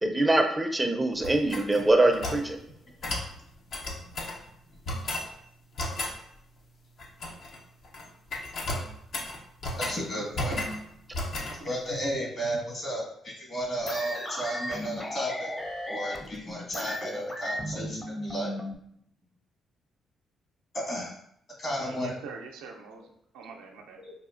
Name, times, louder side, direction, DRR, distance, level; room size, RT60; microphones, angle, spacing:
voice 1, 0.0-2.6, right 2 dB, 15° right, 5 dB, 0.5 m, -23 dB
sound 1, 1.2-2.5 3.0-3.3 3.7-4.4 4.9-5.3 5.8-6.2 7.0-7.6 7.8-8.1 8.3-10.0 10.3-10.8 11.1-11.6, left 1 dB, 65° left, 0.7 m, -33 dB
voice 2, 9.8-10.6 11.5-15.5 15.9-18.5 20.7-21.2 21.6-22.1 24.0-24.1, equal, 50° left, -1 dB, 1.5 m, -33 dB
sound 2, 13.9-18.7, left 1 dB, 25° left, 0.7 m, -35 dB
voice 3, 21.8-24.0, right 4 dB, 85° right, 1 dB, 0.5 m, -44 dB
4.9 x 2.3 x 2.5 m, 0.69 s
supercardioid pair, 50°, 0 cm